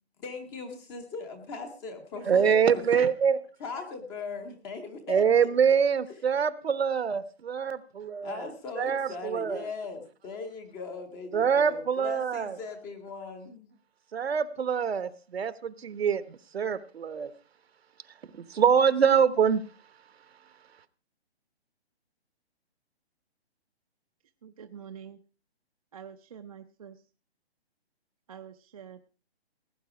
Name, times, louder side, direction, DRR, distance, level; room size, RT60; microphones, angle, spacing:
voice 1, 0.2-3.1 3.6-5.7 8.2-13.7, left 4 dB, 10° left, 7 dB, 0.7 m, -39 dB
voice 2, 2.3-3.4 5.1-8.5 8.8-9.7 11.3-12.6 14.1-17.3 18.3-19.6, right 7 dB, 70° right, 15 dB, 1.1 m, -25 dB
voice 3, 24.4-25.2 25.9-27.0 28.3-29.0, right 8 dB, 35° right, 5 dB, 0.5 m, -46 dB
17.5 x 9.0 x 4.8 m, 0.37 s
hypercardioid pair, 160°, 33 cm